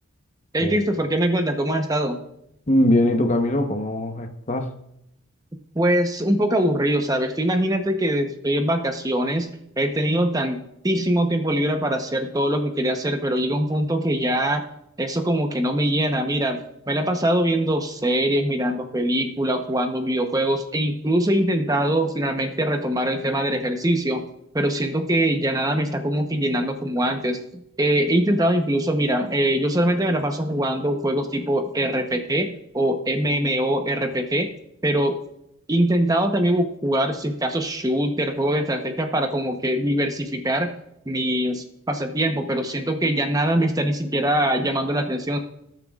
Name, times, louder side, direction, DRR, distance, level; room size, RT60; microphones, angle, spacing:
voice 1, 0.5-2.2 5.7-9.5 9.8-10.6 10.8-14.6 15.0-16.6 16.9-24.2 24.5-27.4 27.8-34.5 34.8-35.2 35.7-40.7 41.1-45.4, right 1 dB, 15° right, 5 dB, 0.8 m, -22 dB
voice 2, 2.7-4.7, left 1 dB, 35° left, 6 dB, 0.9 m, -21 dB
20.0 x 9.1 x 2.4 m, 0.78 s
head